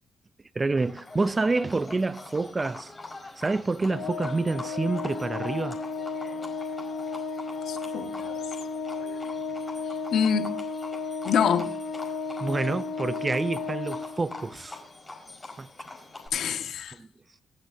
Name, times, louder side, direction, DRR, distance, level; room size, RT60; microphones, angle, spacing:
voice 1, 0.5-2.9 3.4-5.8 12.4-14.8 15.6-15.7 17.0-17.1, right 3 dB, 25° right, 0.6 m, -28 dB
Livestock farm animals working animals, 0.8-16.3, left 2 dB, 20° left, 5.0 m, -44 dB
Organ, 3.9-14.6, left 4 dB, 85° left, 2.1 m, -34 dB
voice 2, 7.6-8.3 10.1-10.5 11.2-11.7 16.3-16.9, left 7 dB, 70° left, 1.7 m, -26 dB
25.5 x 8.7 x 2.7 m
cardioid pair, 90°, 0 cm